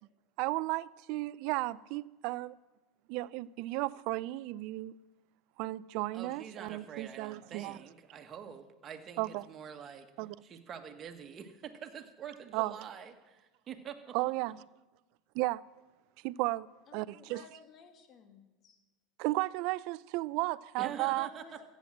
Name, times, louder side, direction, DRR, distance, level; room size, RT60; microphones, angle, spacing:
voice 1, 0.4-2.6 3.1-4.9 5.6-7.8 9.2-9.5 10.2-10.4 12.5-12.7 14.1-14.6 15.3-15.6 16.2-16.7 16.9-17.4 19.2-21.3, right 20 dB, 65° right, 0.4 m, -34 dB
voice 2, 6.1-10.1 10.4-14.2 20.8-21.4, right 7 dB, 35° right, 1.7 m, -46 dB
voice 3, 16.9-18.8 21.0-21.7, left 6 dB, 45° left, 2.3 m, -56 dB
14.0 x 8.8 x 7.7 m
hypercardioid pair, 90°, 0 cm